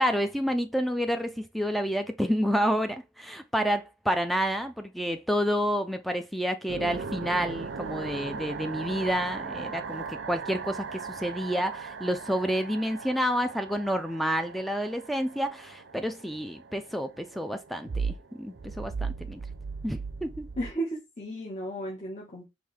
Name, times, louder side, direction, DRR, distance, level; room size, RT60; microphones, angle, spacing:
voice 1, 0.0-19.4 19.8-20.5, equal, ahead, 0.3 m, -29 dB
sound 1, 6.7-20.7, right 5 dB, 85° right, 0.5 m, -38 dB
voice 2, 20.6-22.5, right 1 dB, 40° left, 1.5 m, -34 dB
5.1 x 3.1 x 3.3 m
head